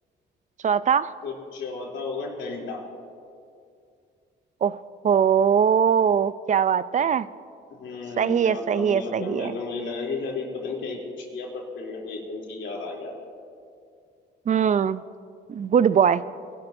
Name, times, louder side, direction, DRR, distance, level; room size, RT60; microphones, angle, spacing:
voice 1, 0.6-1.1 4.6-4.8 5.0-7.3 8.2-9.5 14.5-15.0 15.5-16.2, right 7 dB, 40° right, 16 dB, 0.4 m, -21 dB
voice 2, 1.2-2.9 7.8-13.1, left 3 dB, 70° left, -2 dB, 3.1 m, -33 dB
22.0 x 11.5 x 2.7 m, 2.3 s
cardioid pair, 90°, 20 cm